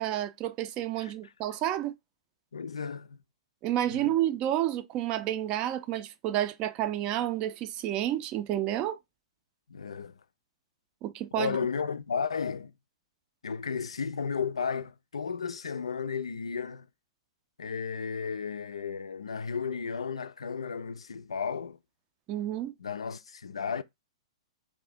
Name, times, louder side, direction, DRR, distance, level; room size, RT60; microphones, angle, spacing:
voice 1, 0.0-1.9 3.6-9.0 11.0-11.5 22.3-22.7, right 12 dB, 35° right, 0.4 m, -30 dB
voice 2, 2.5-3.2 3.9-4.1 9.7-10.2 11.3-12.7 13.4-16.9 17.6-21.8 22.8-23.8, left 6 dB, 75° left, 0.3 m, -34 dB
2.6 x 2.6 x 3.4 m
figure-of-eight pair, 110°, 3 cm